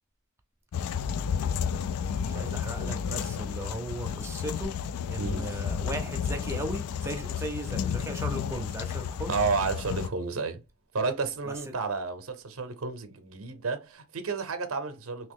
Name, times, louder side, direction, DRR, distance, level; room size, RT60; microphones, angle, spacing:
sound 1, 0.7-10.1, left 7 dB, 85° left, 0.3 m, -32 dB
voice 1, 2.2-4.7 5.1-9.3 11.5-11.7, right 1 dB, 10° right, 0.5 m, -37 dB
voice 2, 5.2-5.5 9.3-10.6 10.9-15.3, right 4 dB, 65° right, 0.6 m, -31 dB
2.9 x 2.8 x 3.6 m
head